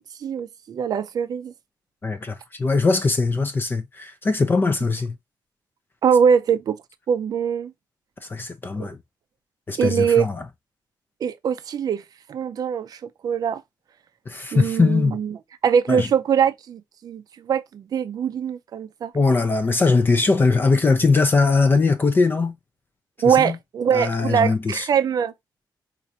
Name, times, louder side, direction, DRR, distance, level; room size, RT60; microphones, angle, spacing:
voice 1, 0.2-1.5 6.0-6.8 7.1-7.7 8.8-8.9 9.8-10.3 11.2-12.0 12.3-13.6 14.5-15.4 15.6-19.1 23.2-25.3, right 7 dB, 55° right, 0.4 m, -22 dB
voice 2, 2.0-5.1 8.2-9.0 9.7-10.4 14.3-15.2 15.9-16.1 19.1-22.5 23.2-23.6 23.9-24.9, left 3 dB, 30° left, 0.4 m, -20 dB
4.3 x 2.5 x 2.6 m
wide cardioid pair, 155°, 8 cm